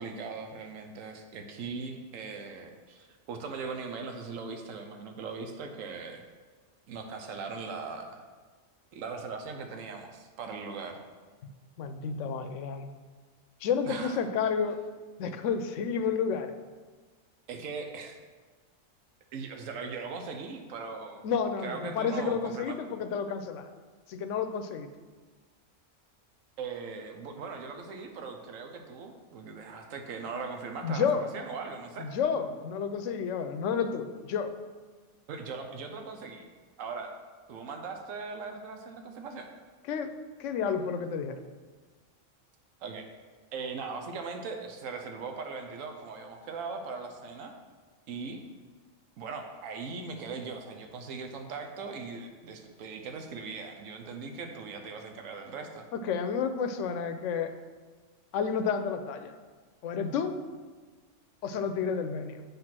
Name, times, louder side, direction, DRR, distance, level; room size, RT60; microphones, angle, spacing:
voice 1, 0.0-6.2 6.9-8.2 8.9-11.0 13.8-14.2 17.5-18.2 19.3-21.3 21.6-22.8 26.6-32.1 35.3-36.5 36.8-37.2 37.5-39.5 42.8-43.1 43.5-47.5 48.1-48.4 49.2-55.9, right 4 dB, 85° right, 4 dB, 1.1 m, -39 dB
voice 2, 11.8-12.9 13.6-14.8 15.2-16.5 21.2-23.7 24.1-24.9 30.8-31.2 32.0-34.6 39.9-40.1 40.4-41.4 55.9-57.5 58.3-59.3 59.8-60.4 61.4-62.4, left 6 dB, 75° left, 9 dB, 0.9 m, -30 dB
7.8 x 3.5 x 5.9 m, 1.4 s
omnidirectional pair, 1.3 m